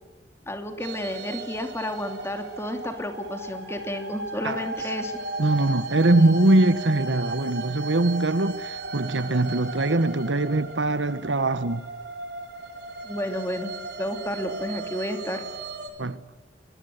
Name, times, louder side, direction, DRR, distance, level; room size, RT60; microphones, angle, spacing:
voice 1, 0.5-5.1 13.0-13.7 14.0-15.4, left 1 dB, 15° left, 2.9 m, -31 dB
sound 1, 0.8-15.9, right 3 dB, 65° right, 4.4 m, -36 dB
voice 2, 5.4-11.8 16.0-16.2, right 2 dB, 85° right, 1.3 m, -22 dB
24.5 x 22.0 x 9.5 m
head